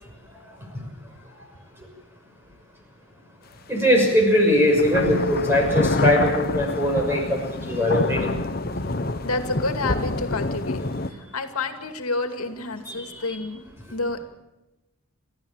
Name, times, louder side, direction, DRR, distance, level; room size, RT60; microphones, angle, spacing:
voice 1, 3.7-8.3 12.9-13.4, left 1 dB, 10° right, 1 dB, 6.0 m, -21 dB
sound 1, 3.8-3.9 4.6-11.1, left 2 dB, 45° left, 1.0 m, -27 dB
voice 2, 9.2-10.8 11.3-13.6 13.9-14.2, left 3 dB, 90° left, 6 dB, 2.4 m, -29 dB
29.0 x 14.0 x 8.9 m, 1.0 s
head